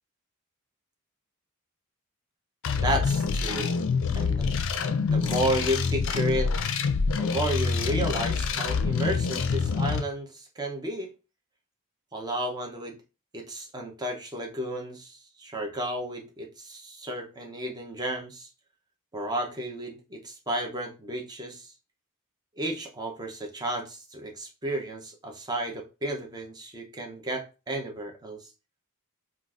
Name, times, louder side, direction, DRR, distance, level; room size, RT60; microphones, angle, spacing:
sound 1, 2.6-10.0, left 5 dB, 60° left, 0.4 m, -26 dB
voice 1, 2.7-3.8 4.1-4.5 5.1-6.5 7.1-11.1 12.1-13.0 13.3-18.5 19.1-21.7 22.6-28.5, right 1 dB, 20° right, 2 dB, 0.6 m, -32 dB
3.8 x 2.4 x 2.4 m, 0.30 s
head